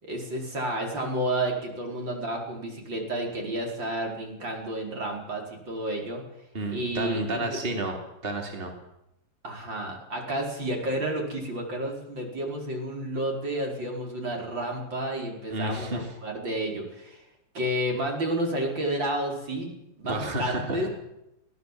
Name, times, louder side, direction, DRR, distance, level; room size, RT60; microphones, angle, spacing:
voice 1, 0.0-6.2 6.7-7.6 9.4-17.3 17.5-19.7 20.0-20.9, right 1 dB, 75° right, 0 dB, 5.6 m, -31 dB
voice 2, 6.5-7.9 8.2-8.7 15.5-16.1 20.1-20.9, right 1 dB, 30° right, 2 dB, 3.2 m, -31 dB
22.5 x 17.5 x 7.6 m, 0.85 s
omnidirectional pair, 2.1 m